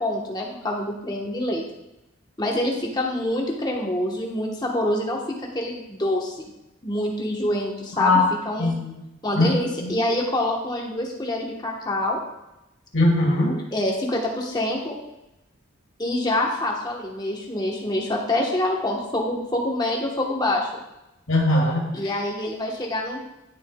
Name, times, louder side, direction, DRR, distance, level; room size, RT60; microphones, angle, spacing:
voice 1, 0.0-1.6 2.4-5.2 5.5-6.5 6.8-8.2 8.5-8.7 9.2-12.2 13.7-15.0 16.0-20.7 21.9-23.2, left 1 dB, 20° left, -1 dB, 1.1 m, -26 dB
voice 2, 8.6-9.0 9.3-9.5 9.8-10.0 12.9-13.6 21.3-22.2, left 2 dB, 75° left, -2 dB, 1.6 m, -21 dB
10.5 x 6.7 x 2.3 m, 0.92 s
head